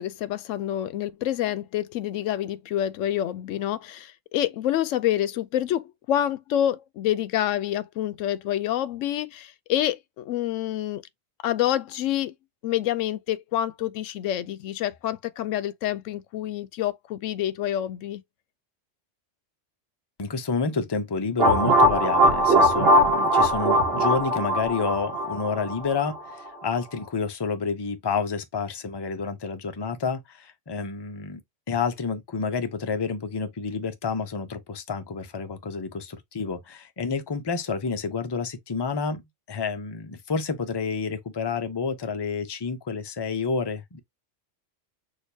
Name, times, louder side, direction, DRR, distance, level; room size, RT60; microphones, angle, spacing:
voice 1, 0.0-11.0 11.4-12.3 12.6-18.2, left 12 dB, 85° left, 0.9 m, -27 dB
voice 2, 20.2-31.4 31.7-39.2 39.5-44.0, left 5 dB, 25° left, 0.6 m, -29 dB
sound 1, 21.4-26.2, right 1 dB, 55° right, 1.0 m, -20 dB
6.4 x 2.7 x 2.7 m
omnidirectional pair, 1.3 m